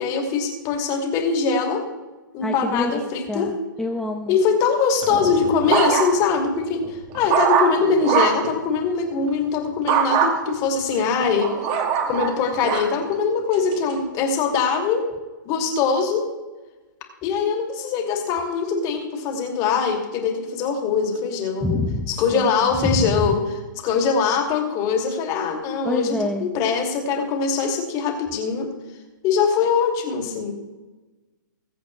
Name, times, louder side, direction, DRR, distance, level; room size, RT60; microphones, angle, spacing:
voice 1, 0.0-1.8 2.3-3.5 4.3-11.5 12.1-15.0 15.4-16.3 17.2-21.8 22.1-23.4 23.8-28.7 29.2-30.5, left 5 dB, 35° left, 2 dB, 2.5 m, -22 dB
voice 2, 2.4-2.9 3.3-4.4 21.6-22.5 22.8-23.3 25.8-26.5, left 2 dB, 5° left, 2 dB, 0.8 m, -26 dB
sound 1, 5.0-6.4 6.8-8.5 9.9-10.3 11.0-12.9 13.5-13.9, right 7 dB, 40° right, 2.0 m, -22 dB
21.5 x 8.1 x 3.2 m, 1.2 s
hypercardioid pair, 125°, 11 cm